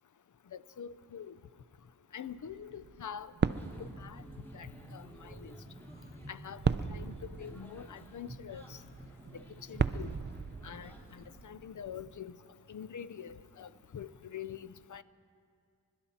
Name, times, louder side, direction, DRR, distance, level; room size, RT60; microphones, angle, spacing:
voice 1, 0.5-1.3 2.1-3.3 3.8-4.2 4.5-5.6 6.3-8.8 9.3-9.4 9.7-10.1 10.6-12.4 12.7-15.0, left 8 dB, 55° left, 14 dB, 0.7 m, -45 dB
sound 1, 2.3-12.2, right 6 dB, 30° right, 0.5 m, -38 dB
sound 2, 3.5-11.3, right 1 dB, 5° left, 2.6 m, -51 dB
sound 3, 5.0-13.9, equal, 30° left, 4.3 m, -66 dB
27.5 x 12.0 x 4.3 m, 2.3 s
cardioid pair, 65°, 36 cm